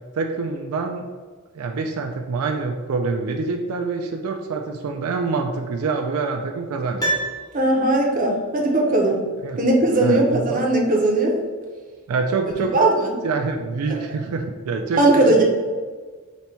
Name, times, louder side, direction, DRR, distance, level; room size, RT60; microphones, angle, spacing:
voice 1, 0.1-1.0 1.5-7.1 9.4-9.6 10.0-10.7 12.1-12.8 13.2-15.0, right 4 dB, 80° right, 4 dB, 0.4 m, -26 dB
Piano, 7.0-8.2 8.5-8.6, right 2 dB, 20° left, 0.6 m, -28 dB
voice 2, 7.5-9.3 9.6-11.4 12.7-13.1 13.9-14.0 14.9-15.4, right 2 dB, 35° right, 0 dB, 0.6 m, -18 dB
4.0 x 2.2 x 4.3 m, 1.4 s
head